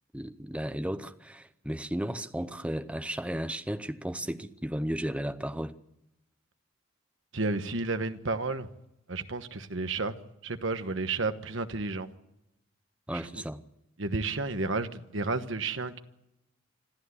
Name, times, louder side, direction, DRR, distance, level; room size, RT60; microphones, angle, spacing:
voice 1, 0.1-5.7 13.1-13.6, equal, 5° right, 0.8 m, -34 dB
voice 2, 7.3-8.7 9.1-10.2 10.4-12.1 13.3-13.4 14.0-16.0, right 3 dB, 65° right, 1.2 m, -31 dB
26.0 x 13.5 x 8.2 m
head